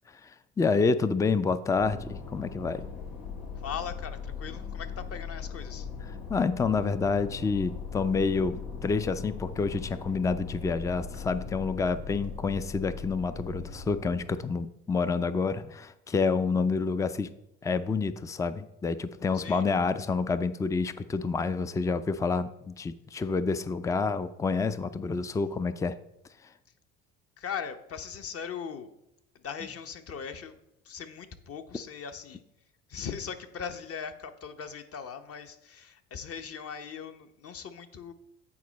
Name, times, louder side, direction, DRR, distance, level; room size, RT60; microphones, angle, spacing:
voice 1, 0.6-2.9 6.3-17.3 17.6-26.0, left 4 dB, 10° left, 13 dB, 0.3 m, -28 dB
sound 1, 1.7-14.4, left 5 dB, 85° left, 1.3 m, -39 dB
voice 2, 3.6-5.9 19.3-19.6 27.4-28.9 29.3-30.6 30.8-32.4 32.9-38.1, left 7 dB, 40° left, 8 dB, 0.9 m, -39 dB
8.6 x 4.3 x 4.1 m, 0.84 s
hypercardioid pair, 70°, 35 cm